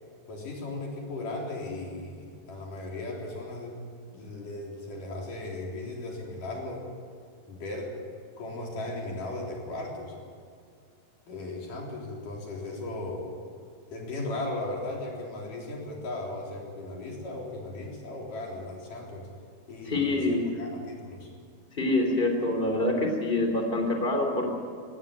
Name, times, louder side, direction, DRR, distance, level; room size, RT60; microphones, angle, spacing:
voice 1, 0.3-3.8 4.1-6.9 7.5-7.9 8.4-10.2 11.3-13.3 13.9-19.3 19.7-21.3, left 2 dB, 55° left, -1 dB, 5.3 m, -37 dB
voice 2, 19.9-20.4 21.8-24.5, left 2 dB, 15° left, 3 dB, 3.1 m, -26 dB
18.0 x 17.5 x 9.3 m, 2.2 s
omnidirectional pair, 4.5 m